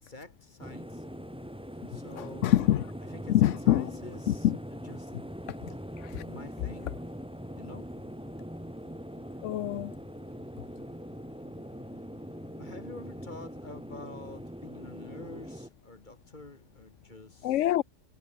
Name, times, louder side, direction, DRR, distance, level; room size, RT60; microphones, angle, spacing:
voice 1, 0.0-1.0 1.9-2.5 3.0-5.1 6.2-6.9 7.6-7.9 12.6-17.7, left 2 dB, 40° left, 3.2 m, -48 dB
sound 1, 0.6-15.7, equal, 5° right, 3.3 m, -42 dB
voice 2, 2.2-2.8 3.3-3.9 4.3-4.6 6.0-6.2 9.4-9.9 17.4-17.8, left 13 dB, 85° left, 1.0 m, -25 dB
omnidirectional pair, 1.3 m